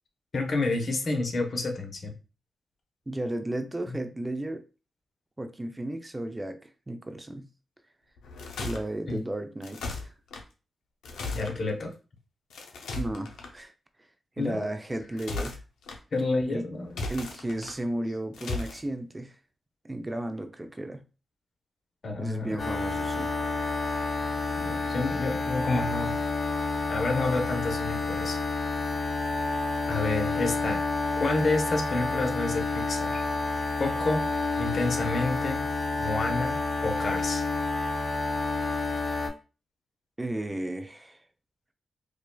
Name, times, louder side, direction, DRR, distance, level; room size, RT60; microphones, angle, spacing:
voice 1, 0.3-2.1 3.9-4.0 9.1-9.2 11.3-11.9 14.4-14.7 16.1-17.0 22.0-22.6 24.6-26.1 26.9-28.4 29.9-30.8 31.2-33.2 33.8-34.2 34.6-35.6 36.0-37.4, left 3 dB, 60° left, 1.0 m, -29 dB
voice 2, 3.1-4.6 5.4-7.5 8.6-10.1 12.9-13.7 14.4-15.6 16.5-16.6 17.1-19.3 19.8-21.0 22.2-23.3 24.8-24.9 40.2-41.2, right 1 dB, 20° right, 0.5 m, -34 dB
sound 1, 8.2-8.8 9.6-10.4 11.0-11.6 12.5-13.5 15.0-16.0 16.8-17.7 18.3-18.8, left 3 dB, 90° left, 0.6 m, -36 dB
sound 2, 22.6-39.3, left 3 dB, 40° left, 1.7 m, -29 dB
4.9 x 2.3 x 2.2 m
cardioid pair, 55°, 0 cm